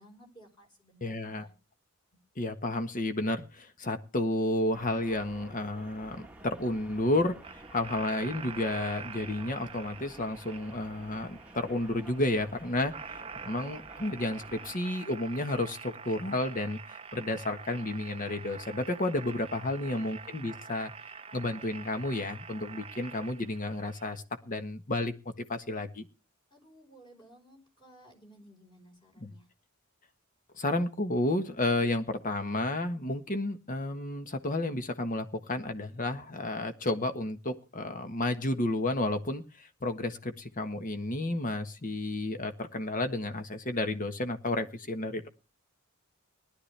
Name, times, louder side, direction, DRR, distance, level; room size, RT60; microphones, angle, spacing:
voice 1, 0.0-1.5 19.5-20.1 26.5-29.5, right 1 dB, 20° left, 2 dB, 4.8 m, -57 dB
voice 2, 1.0-1.5 2.4-20.9 21.3-25.1 25.5-26.1 29.2-29.3 30.5-45.3, left 2 dB, 40° left, 8 dB, 1.4 m, -31 dB
sound 1, 4.7-14.7, right 1 dB, 5° right, 1.4 m, -51 dB
sound 2, 7.4-24.2, right 6 dB, 25° right, 0.6 m, -46 dB
19.5 x 11.5 x 3.4 m, 0.32 s
head